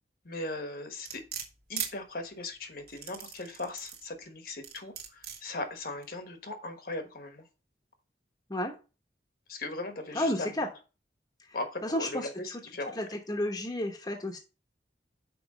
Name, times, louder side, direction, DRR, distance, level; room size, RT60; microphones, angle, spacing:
voice 1, 0.3-1.2 1.7-7.4 9.5-10.5 11.5-13.0, left 2 dB, 55° left, 6 dB, 1.3 m, -38 dB
sound 1, 1.1-1.9 2.9-4.1 4.6-5.4 6.0-6.1, right 8 dB, 60° right, 1.6 m, -38 dB
voice 2, 10.1-10.7 11.8-12.6 12.9-14.4, left 1 dB, 20° left, 2 dB, 1.0 m, -32 dB
6.2 x 4.8 x 4.9 m, 0.32 s
head